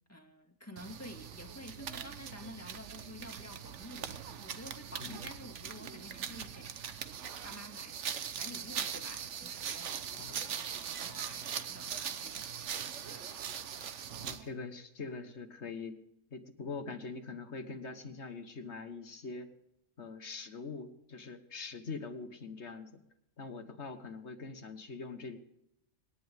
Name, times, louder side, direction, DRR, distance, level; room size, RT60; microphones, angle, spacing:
voice 1, 0.1-7.2 7.4-8.0 8.4-12.6 13.1-13.3, left 1 dB, 10° left, 3 dB, 2.0 m, -50 dB
sound 1, 0.8-14.5, right 8 dB, 60° right, 1.1 m, -41 dB
voice 2, 10.1-10.5 14.2-16.0 16.3-19.5 20.0-22.9 23.4-25.4, left 4 dB, 55° left, 9 dB, 1.6 m, -43 dB
26.5 x 10.5 x 3.6 m, 0.84 s
omnidirectional pair, 1.5 m